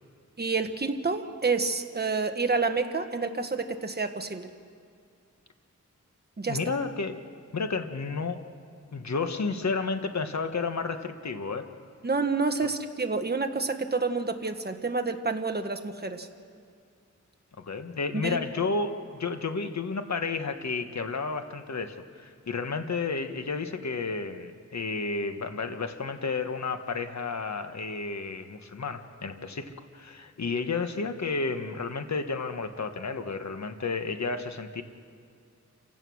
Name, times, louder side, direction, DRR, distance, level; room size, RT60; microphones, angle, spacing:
voice 1, 0.4-4.5 6.4-6.6 12.0-16.3 18.1-18.4, right 4 dB, 30° right, 6 dB, 1.4 m, -28 dB
voice 2, 6.5-7.2 7.5-8.4 8.9-11.6 17.6-34.8, left 4 dB, 60° left, 7 dB, 1.4 m, -31 dB
28.5 x 16.5 x 6.3 m, 2.3 s
wide cardioid pair, 95°, 31 cm